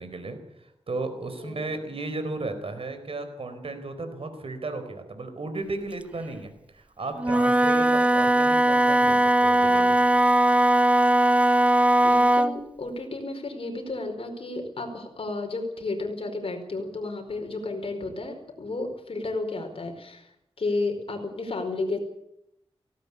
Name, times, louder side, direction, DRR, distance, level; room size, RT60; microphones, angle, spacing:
voice 1, 0.0-10.0, right 2 dB, 60° right, 8 dB, 4.3 m, -35 dB
voice 2, 1.4-1.7 7.9-8.0 12.0-20.3 20.6-22.0, left 2 dB, 60° left, 4 dB, 4.8 m, -32 dB
Wind instrument woodwind instrument, 7.2-12.6, right 1 dB, 10° right, 0.7 m, -19 dB
18.5 x 17.5 x 8.4 m, 0.79 s
wide cardioid pair, 95°, 11 cm